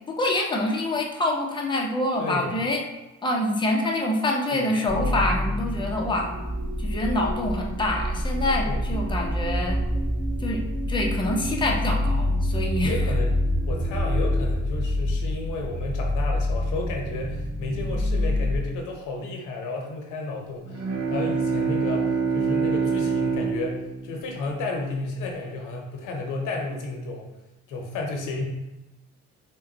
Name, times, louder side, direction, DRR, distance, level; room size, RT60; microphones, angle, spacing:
voice 1, 0.0-2.8 3.2-6.3 6.8-9.8 10.4-10.6 10.9-12.9, left 1 dB, 15° left, 0 dB, 0.6 m, -26 dB
voice 2, 2.2-2.5 4.5-4.7 8.6-8.8 12.8-27.3 27.7-28.4, left 3 dB, 90° left, 1 dB, 0.8 m, -32 dB
sound 1, 4.9-18.6, left 1 dB, 15° right, 0.9 m, -27 dB
sound 2, 6.3-14.4, right 2 dB, 85° right, 0.9 m, -39 dB
Bowed string instrument, 20.6-25.2, right 5 dB, 60° right, 0.7 m, -26 dB
3.7 x 2.2 x 3.8 m, 1.0 s
cardioid pair, 90°, 30 cm